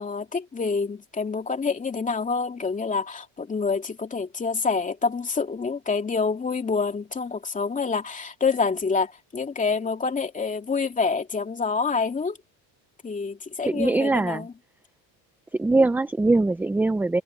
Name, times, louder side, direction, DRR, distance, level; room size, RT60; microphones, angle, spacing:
voice 1, 0.0-12.4 13.0-14.5, left 4 dB, 20° left, 2.8 m, -27 dB
voice 2, 13.7-14.4 15.5-17.2, right 2 dB, 5° right, 0.4 m, -22 dB
cardioid pair, 145°, 41 cm